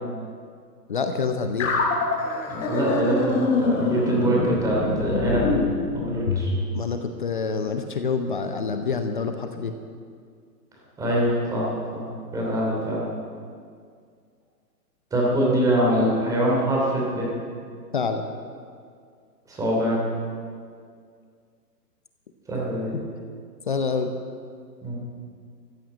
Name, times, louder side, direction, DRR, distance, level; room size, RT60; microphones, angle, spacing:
voice 1, 0.9-1.7 6.7-9.7 17.9-18.2 23.7-24.1, left 5 dB, 30° left, 7 dB, 0.7 m, -27 dB
sound 1, 1.6-6.5, left 4 dB, 50° left, 3.3 m, -25 dB
voice 2, 2.5-5.4 5.9-6.5 11.0-12.0 12.3-13.0 15.1-17.3 19.5-20.0 22.5-22.9 24.8-25.0, right 1 dB, 5° right, -4 dB, 2.9 m, -24 dB
14.5 x 9.3 x 8.8 m, 2.1 s
hypercardioid pair, 160°, 50 cm